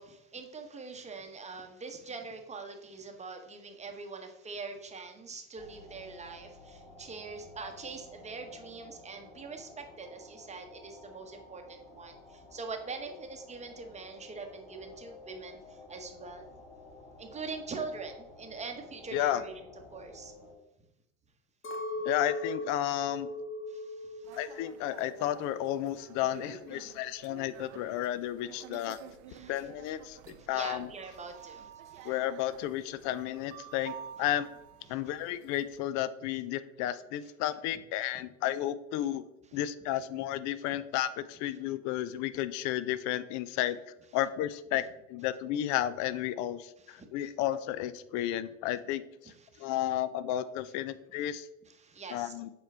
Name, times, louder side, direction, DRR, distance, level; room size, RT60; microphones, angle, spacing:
voice 1, 0.0-16.5 17.2-19.6 19.9-20.3 23.7-24.4 26.7-26.9 29.3-29.5 30.2-32.1 34.9-35.0 38.2-38.3 46.8-47.1 49.5-49.7 51.2-51.3 51.7-52.3, right 4 dB, 15° right, 4 dB, 0.9 m, -43 dB
sound 1, 5.6-20.5, left 2 dB, 10° left, 2.1 m, -52 dB
voice 2, 19.1-19.4 22.1-23.3 24.3-29.0 29.5-30.2 30.5-30.9 32.0-34.5 34.9-39.2 39.5-43.8 44.1-44.8 45.1-49.3 49.6-51.5 52.1-52.5, left 12 dB, 45° left, 16 dB, 0.5 m, -32 dB
Chink clink, 21.6-26.0 26.3-27.1, left 1 dB, 30° left, 1.1 m, -39 dB
sound 2, 24.2-35.8, right 9 dB, 75° right, 0.6 m, -51 dB
7.4 x 4.6 x 3.3 m, 0.90 s
hypercardioid pair, 105°, 40 cm